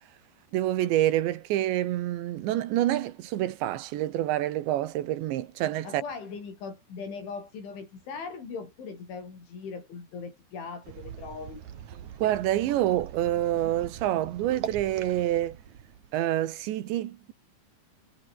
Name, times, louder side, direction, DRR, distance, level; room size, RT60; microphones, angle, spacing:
voice 1, 0.5-6.0 12.2-15.6 16.1-17.3, right 13 dB, 75° right, 3.7 m, -27 dB
voice 2, 5.8-11.6, left 5 dB, 80° left, 9.6 m, -39 dB
sound 1, 10.8-16.7, right 9 dB, 50° right, 2.6 m, -43 dB
omnidirectional pair, 5.3 m